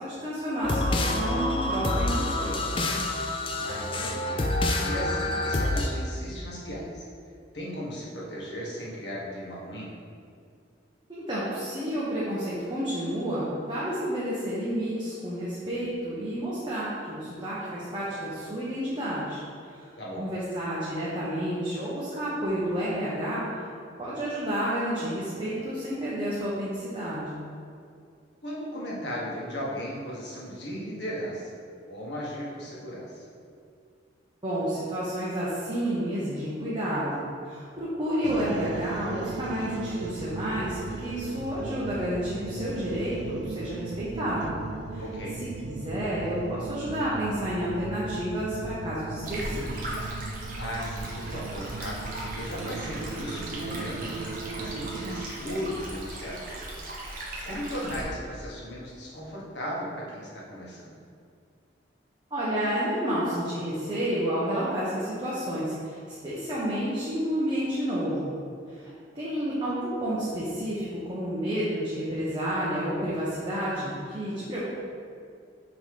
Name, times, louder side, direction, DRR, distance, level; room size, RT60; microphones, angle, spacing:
voice 1, 0.0-2.6 11.1-19.4 19.8-19.9 20.2-23.5 24.0-27.4 34.4-44.6 44.9-45.0 45.6-50.1 62.3-68.4 68.8-74.7, equal, 25° right, -10 dB, 1.0 m, -30 dB
sound 1, 0.6-5.9, left 2 dB, 30° left, 0.4 m, -27 dB
voice 2, 3.5-4.4 4.8-7.1 7.5-9.9 20.0-20.3 28.4-31.5 31.9-33.2 45.0-45.4 50.5-54.2 54.6-56.8 57.2-61.0, equal, 70° left, -5 dB, 1.5 m, -36 dB
sound 2, 38.2-55.3, right 3 dB, 70° right, 0.3 m, -37 dB
Stream, 49.2-58.0, right 1 dB, 50° right, 1.2 m, -38 dB
6.2 x 3.2 x 5.3 m, 2.3 s
head